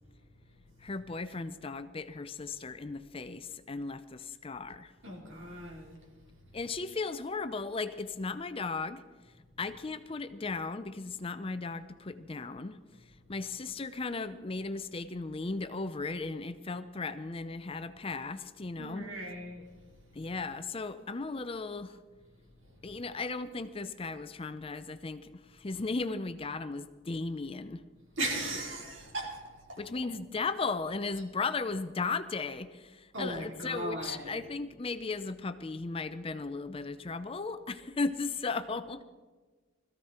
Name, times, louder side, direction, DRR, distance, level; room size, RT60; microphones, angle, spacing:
voice 1, 0.8-4.9 6.5-9.0 9.6-12.8 13.3-19.1 20.1-22.0 22.8-27.8 29.8-39.0, left 3 dB, 30° left, 11 dB, 0.5 m, -36 dB
voice 2, 5.0-6.0 18.8-19.6 28.2-29.8 33.1-34.3, right 1 dB, 70° right, -2 dB, 4.2 m, -37 dB
20.5 x 14.5 x 4.4 m, 1.3 s
head